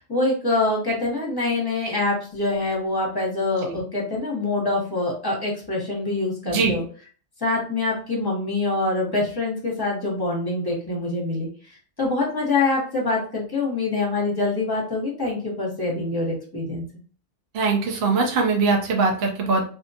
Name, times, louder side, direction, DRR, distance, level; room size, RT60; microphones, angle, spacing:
voice 1, 0.0-6.8 7.4-11.5 12.0-16.8, left 2 dB, 20° left, -3 dB, 0.9 m, -25 dB
voice 2, 6.5-6.8 17.5-19.6, right 4 dB, 65° right, 1 dB, 0.8 m, -21 dB
2.5 x 2.2 x 2.6 m, 0.42 s
omnidirectional pair, 1.2 m